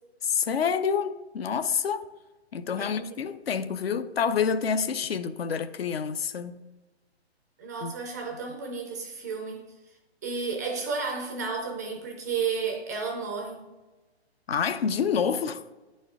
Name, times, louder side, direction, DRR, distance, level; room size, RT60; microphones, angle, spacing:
voice 1, 0.2-2.0 2.5-6.6 7.8-7.9 14.5-15.6, left 6 dB, 65° left, 0.6 m, -28 dB
voice 2, 2.8-3.1 7.6-9.7 10.2-13.7, right 5 dB, 15° right, 0.4 m, -32 dB
10.0 x 4.3 x 3.6 m
figure-of-eight pair, 135°, 33 cm